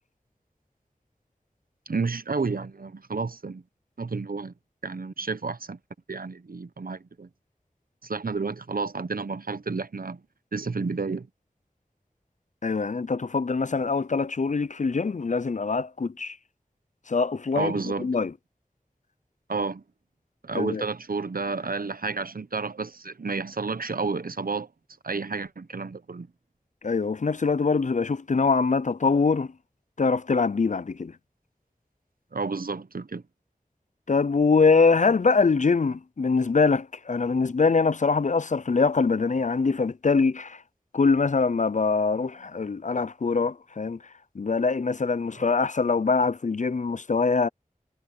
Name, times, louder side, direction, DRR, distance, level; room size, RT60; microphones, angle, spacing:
voice 1, 1.9-3.6 4.0-4.5 4.8-5.8 6.1-7.3 8.0-10.2 10.5-11.3 17.6-18.1 19.5-19.8 20.4-24.7 25.0-26.3 32.3-33.2, right 4 dB, 85° right, 0.9 m, -31 dB
voice 2, 12.6-16.4 17.1-17.7 18.0-18.3 20.5-20.8 26.8-29.5 30.0-31.1 34.1-40.6 40.9-44.0 44.4-47.5, left 4 dB, 55° left, 0.5 m, -23 dB
wide cardioid pair, 50°, 15 cm